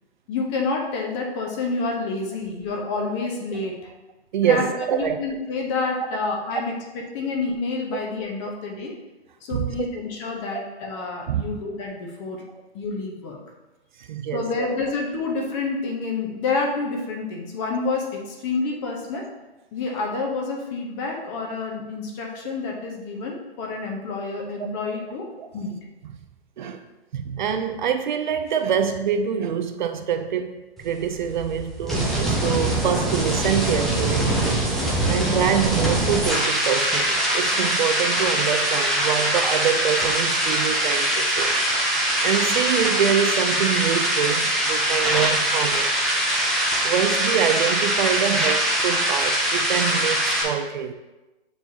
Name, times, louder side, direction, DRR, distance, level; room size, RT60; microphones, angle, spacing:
voice 1, 0.3-3.9 4.4-9.0 9.4-12.5 12.7-13.4 14.3-19.3 19.7-25.3 25.5-25.8, left 3 dB, 30° left, 1.1 m, -28 dB
voice 2, 4.3-5.2 5.8-5.9 7.9-8.0 9.5-9.9 10.5-10.6 11.3-11.4 14.0-14.7 24.6-24.7 25.4-25.5 26.6-26.8 27.1-34.3 35.1-41.5 42.2-46.1 46.8-50.9, right 8 dB, 50° right, 0.5 m, -25 dB
sound 1, 30.8-50.4, right 1 dB, ahead, 0.5 m, -23 dB
7.7 x 4.6 x 2.8 m
hypercardioid pair, 145°, 31 cm